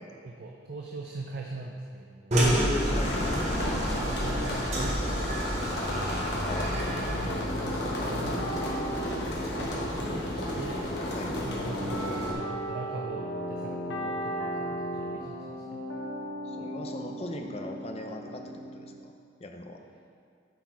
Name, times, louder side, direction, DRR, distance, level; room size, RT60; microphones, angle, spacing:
voice 1, 0.2-2.4 4.0-6.2 6.7-9.0 9.5-10.8 11.4-15.8, right 2 dB, 55° right, 0 dB, 0.5 m, -41 dB
sound 1, 2.3-7.4, equal, 35° right, 1.1 m, -29 dB
voice 2, 2.4-3.5 6.4-6.7 11.1-11.4 16.4-19.1 19.4-19.8, left 1 dB, 30° left, 3 dB, 0.5 m, -38 dB
sound 2, 2.8-12.3, left 1 dB, 60° left, 1.3 m, -32 dB
sound 3, 6.3-19.0, equal, 75° left, 0.8 m, -37 dB
8.1 x 4.2 x 4.6 m, 2.2 s
head